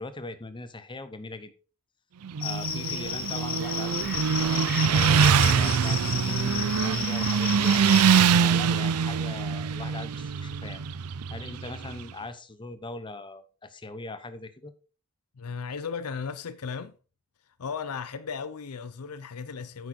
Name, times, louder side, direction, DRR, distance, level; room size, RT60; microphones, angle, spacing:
voice 1, 0.0-1.5 2.4-7.8 8.4-10.8 11.3-14.7, left 2 dB, 20° left, 0.9 m, -40 dB
Motorcycle, 2.2-12.0, right 6 dB, 85° right, 0.5 m, -24 dB
Cricket, 2.4-8.2, left 7 dB, 40° left, 1.3 m, -33 dB
voice 2, 15.4-16.9 17.6-19.9, left 5 dB, 80° left, 0.6 m, -36 dB
9.1 x 6.5 x 4.2 m
head